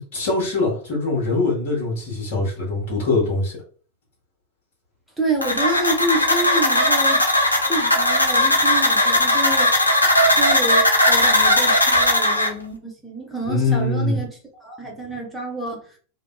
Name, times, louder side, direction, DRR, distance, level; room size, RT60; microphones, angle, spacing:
voice 1, 0.1-3.6 13.4-14.2, left 3 dB, 50° left, 1.1 m, -22 dB
voice 2, 5.2-7.3 7.5-9.9 10.3-14.4 14.6-15.9, right 1 dB, 5° right, 0.9 m, -28 dB
sound 1, 5.4-12.5, left 1 dB, 80° left, 0.5 m, -18 dB
2.5 x 2.2 x 2.2 m
figure-of-eight pair, 90°, 0 cm